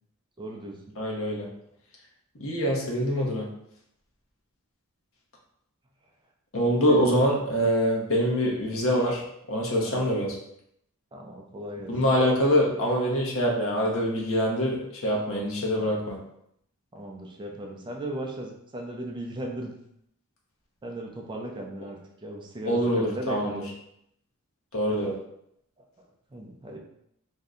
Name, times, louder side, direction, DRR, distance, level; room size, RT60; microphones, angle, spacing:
voice 1, 0.4-0.8 6.8-7.1 7.6-7.7 9.8-10.0 11.1-12.2 15.7-15.9 16.9-19.7 20.8-23.6 26.3-26.8, right 1 dB, 20° right, 0 dB, 0.4 m, -37 dB
voice 2, 1.0-1.5 2.4-3.5 6.5-9.2 9.5-10.4 11.9-16.2 22.7-23.6 24.7-25.1, equal, 65° left, -3 dB, 0.8 m, -24 dB
2.7 x 2.1 x 3.6 m, 0.75 s
head